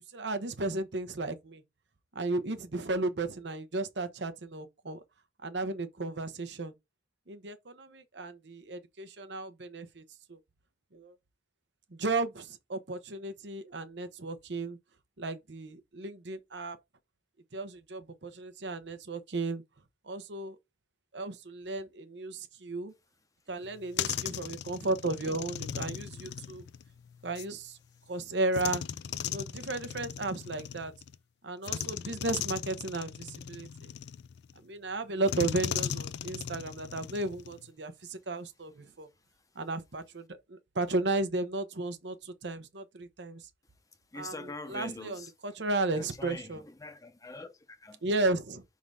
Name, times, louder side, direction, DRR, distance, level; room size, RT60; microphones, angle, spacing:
voice 1, 0.0-1.6 2.1-5.0 5.4-6.7 7.3-10.0 10.3-10.4 10.9-11.1 11.9-14.8 15.2-16.8 17.5-19.6 20.0-20.6 21.1-22.9 23.5-26.6 27.2-27.8 28.1-28.8 29.3-30.9 31.4-33.9 34.6-39.1 39.6-43.5 44.2-44.3 44.7-46.6 48.0-48.6, right 2 dB, 80° right, 1.0 m, -34 dB
sound 1, 23.6-27.5 28.5-31.2 31.6-34.6 35.3-37.7, left 9 dB, 70° left, 0.3 m, -38 dB
voice 2, 44.1-45.3 45.9-48.0, left 2 dB, 20° left, 0.7 m, -44 dB
5.4 x 3.8 x 4.8 m
head